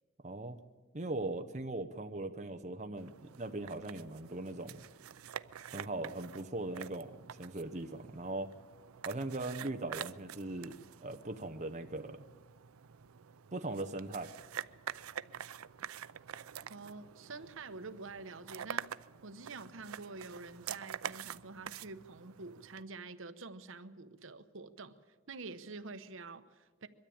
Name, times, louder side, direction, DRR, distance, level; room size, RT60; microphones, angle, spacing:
voice 1, 0.2-0.6 0.9-4.8 5.7-8.5 9.0-10.8 11.0-12.3 13.5-14.3, right 2 dB, 35° right, 6 dB, 0.8 m, -39 dB
sound 1, 3.0-22.8, right 9 dB, 90° right, 0.5 m, -47 dB
voice 2, 16.7-18.9 19.2-24.9 25.3-26.9, right 3 dB, 65° right, 11 dB, 1.0 m, -47 dB
22.5 x 13.0 x 8.7 m, 1.4 s
head